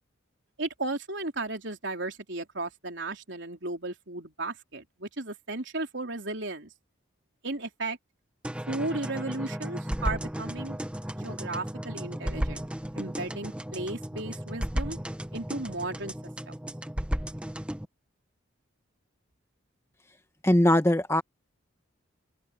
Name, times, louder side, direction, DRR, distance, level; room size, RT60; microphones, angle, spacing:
voice 1, 0.6-6.7 7.4-8.0 8.7-10.8 11.1-12.7 13.0-15.0 15.3-16.1 16.5-16.6, right 2 dB, 65° right, 3.7 m, -35 dB
sound 1, 8.4-17.8, equal, 5° right, 0.8 m, -34 dB
voice 2, 20.4-21.2, left 1 dB, 15° left, 1.3 m, -21 dB
head